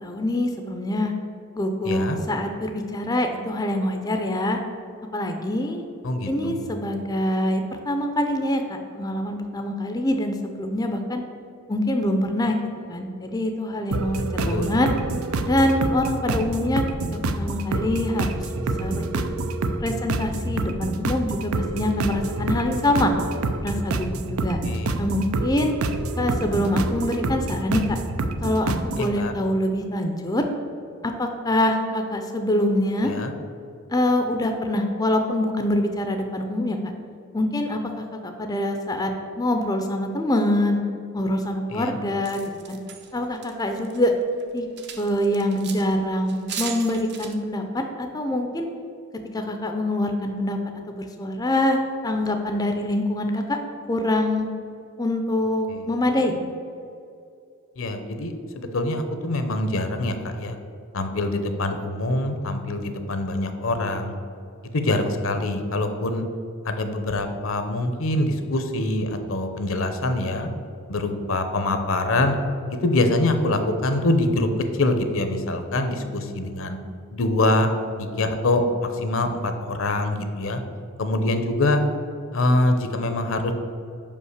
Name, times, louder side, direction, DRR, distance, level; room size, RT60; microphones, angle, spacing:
voice 1, 0.0-1.1 1.5-4.6 5.1-5.8 6.3-11.2 11.7-12.6 12.9-14.9 15.5-16.8 17.1-18.4 18.8-19.2 19.8-23.1 23.6-24.6 25.0-25.7 26.2-28.0 28.4-30.5 31.0-33.1 33.9-36.8 37.3-40.8 41.1-42.4 42.7-42.8 43.1-44.1 44.5-44.7 45.0-48.7 49.3-50.6 50.9-53.6 53.9-54.5 55.0-56.4, left 1 dB, 20° left, 4 dB, 0.4 m, -25 dB
voice 2, 1.8-2.2 6.0-6.6 14.4-14.7 24.6-25.0 29.0-29.3 33.0-33.3 41.7-42.0 55.7-55.8 57.8-60.6 60.9-64.2 64.7-66.2 66.6-70.5 70.9-72.4 72.8-74.5 74.7-76.8 77.1-77.7 78.0-80.6 81.0-81.8 82.3-83.5, left 2 dB, 70° left, 7 dB, 0.7 m, -24 dB
sound 1, 13.9-29.1, right 2 dB, 90° right, 0.5 m, -27 dB
sound 2, 42.2-44.1 44.4-45.9 46.3-47.3, right 7 dB, 50° right, 0.7 m, -37 dB
5.4 x 5.2 x 6.5 m, 2.5 s
head